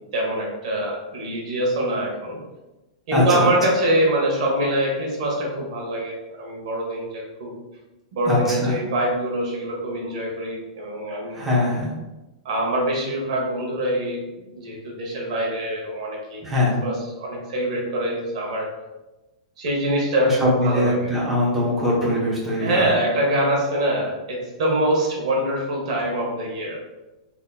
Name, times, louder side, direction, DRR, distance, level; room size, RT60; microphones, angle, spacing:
voice 1, 0.1-2.4 3.1-7.5 8.1-11.5 12.4-14.2 14.6-16.4 16.8-18.7 19.6-21.1 22.6-26.8, right 1 dB, 65° right, -2 dB, 1.1 m, -24 dB
voice 2, 3.1-3.5 8.3-8.8 11.3-11.9 16.4-16.8 20.2-22.9, left 1 dB, 10° right, -6 dB, 0.9 m, -22 dB
3.6 x 2.9 x 2.3 m, 1.1 s
hypercardioid pair, 135°, 4 cm